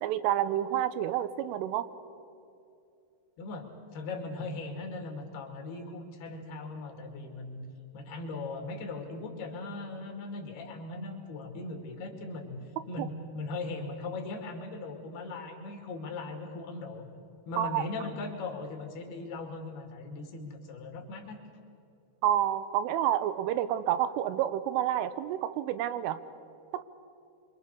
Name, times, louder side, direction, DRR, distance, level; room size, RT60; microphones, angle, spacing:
voice 1, 0.0-1.9 13.0-13.1 17.6-17.8 22.2-26.2 26.7-26.8, right 11 dB, 90° right, 13 dB, 3.4 m, -29 dB
voice 2, 3.4-7.6 7.9-12.6 12.9-17.1 17.5-21.4, left 3 dB, 60° left, 2 dB, 4.0 m, -39 dB
26.0 x 25.5 x 6.7 m, 2.6 s
omnidirectional pair, 5.7 m